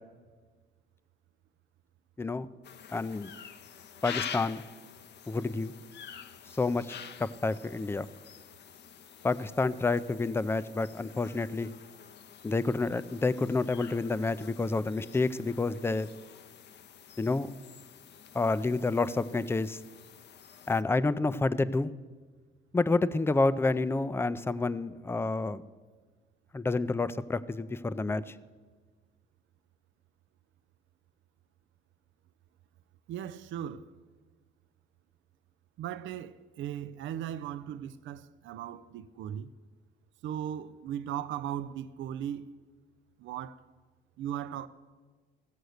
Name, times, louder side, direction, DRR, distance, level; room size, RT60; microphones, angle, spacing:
sound 1, 2.6-20.8, left 8 dB, 60° left, 0.6 m, -47 dB
voice 1, 2.9-3.3 4.0-4.6 5.3-5.7 6.6-8.1 9.2-11.7 12.4-16.1 17.2-17.5 18.3-19.8 20.7-21.9 22.7-25.6 26.5-28.3, left 3 dB, 10° left, 0.4 m, -29 dB
voice 2, 33.1-33.9 35.8-39.5 40.2-42.6 43.2-43.6 44.2-44.7, right 10 dB, 75° right, 0.5 m, -37 dB
16.0 x 6.7 x 6.5 m
cardioid pair, 90°, 20 cm